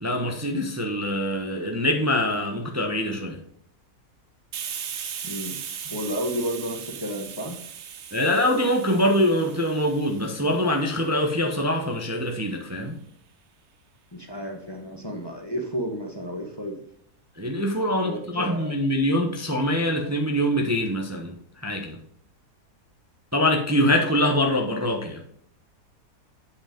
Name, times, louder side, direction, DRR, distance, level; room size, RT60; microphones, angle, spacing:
voice 1, 0.0-3.4 8.1-13.0 17.4-21.3 21.6-22.0 23.3-25.2, left 1 dB, 15° right, 2 dB, 0.6 m, -24 dB
Hiss, 4.5-11.9, right 8 dB, 55° right, 0.9 m, -38 dB
voice 2, 5.2-5.6 5.8-7.6 14.1-16.8 17.9-18.8, equal, 20° left, 2 dB, 0.9 m, -32 dB
8.5 x 5.1 x 5.1 m, 0.67 s
omnidirectional pair, 1.7 m